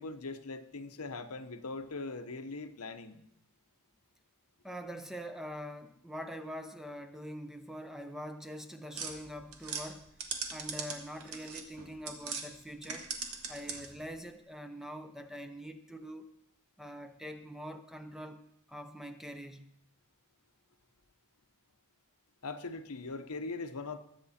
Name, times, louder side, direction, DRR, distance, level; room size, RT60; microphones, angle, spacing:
voice 1, 0.0-3.2 22.4-24.0, left 3 dB, 85° left, 8 dB, 1.0 m, -41 dB
voice 2, 4.6-10.1 10.5-13.1 13.5-16.3 16.8-18.4 18.7-19.7, equal, ahead, 7 dB, 0.7 m, -44 dB
sound 1, 8.9-12.5 12.8-14.0, right 5 dB, 80° right, 1.8 m, -40 dB
21.5 x 8.1 x 4.3 m, 0.73 s
head